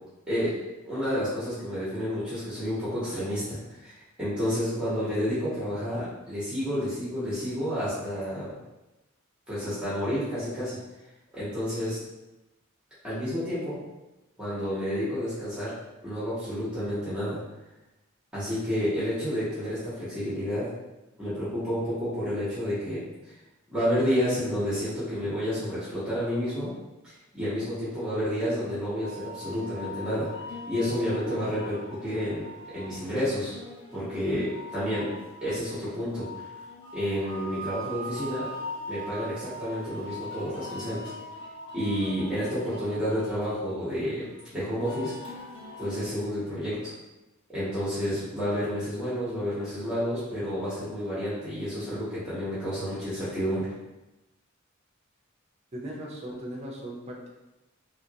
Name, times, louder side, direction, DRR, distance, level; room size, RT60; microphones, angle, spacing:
voice 1, 0.3-8.5 9.5-10.8 11.3-12.0 13.0-13.8 14.4-15.7 16.0-17.4 18.3-20.7 21.2-23.0 23.7-26.7 27.0-30.3 30.7-32.4 32.7-33.5 33.9-35.1 35.4-36.4 36.9-38.5 38.9-41.1 41.7-45.1 45.8-46.9 47.5-53.7, equal, 5° right, -12 dB, 1.0 m, -30 dB
voice 2, 4.4-4.9 31.1-31.4 55.7-57.3, right 1 dB, 30° right, -2 dB, 0.5 m, -39 dB
sound 1, 29.0-46.0, left 1 dB, 25° left, 0.8 m, -41 dB
2.9 x 2.4 x 2.7 m, 1.0 s
head